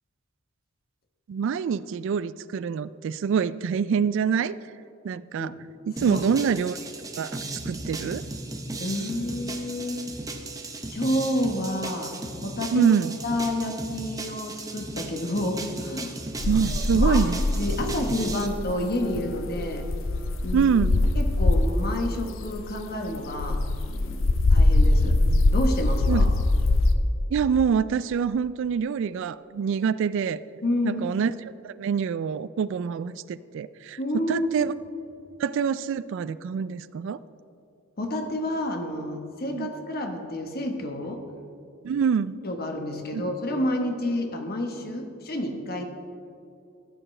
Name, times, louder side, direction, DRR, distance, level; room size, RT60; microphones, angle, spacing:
voice 1, 1.3-4.6 5.0-5.5 5.9-6.8 7.2-8.2 12.7-13.1 16.5-17.4 20.5-21.0 26.1-26.3 27.3-30.4 30.8-31.3 31.6-34.0 34.3-34.7 35.4-37.2 39.5-39.7 41.8-42.4 43.1-43.2, right 6 dB, 60° right, 17 dB, 0.3 m, -25 dB
sound 1, 6.0-18.5, right 2 dB, 15° right, 0.7 m, -36 dB
voice 2, 8.8-10.0 10.8-12.1 12.4-12.9 13.2-16.2 16.7-19.9 20.4-20.7 21.2-25.2 25.5-26.3 30.6-31.0 34.0-34.7 38.0-41.2 42.4-45.9, left 1 dB, 50° left, 3 dB, 1.2 m, -29 dB
sound 2, 16.4-21.9 22.4-26.9, left 2 dB, 65° left, 0.6 m, -23 dB
15.0 x 9.0 x 3.3 m, 2.6 s
head